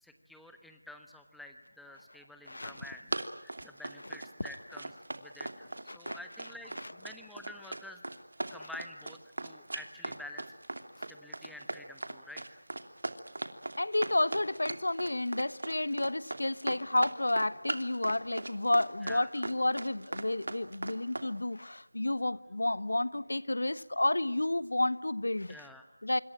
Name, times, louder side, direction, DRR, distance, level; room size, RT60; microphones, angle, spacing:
voice 1, 0.0-3.1 3.4-8.0 8.5-10.4 11.0-12.6 19.0-19.3 25.5-25.8, left 1 dB, ahead, 1.0 m, -49 dB
voice 2, 2.5-2.8 5.9-6.2 6.8-6.9 8.5-8.7 11.0-11.1 13.8-25.5 26.0-26.2, left 1 dB, 75° left, 1.1 m, -31 dB
Run, 2.6-21.3, right 2 dB, 65° right, 2.7 m, -38 dB
26.5 x 25.0 x 8.9 m
figure-of-eight pair, 175°, 0 cm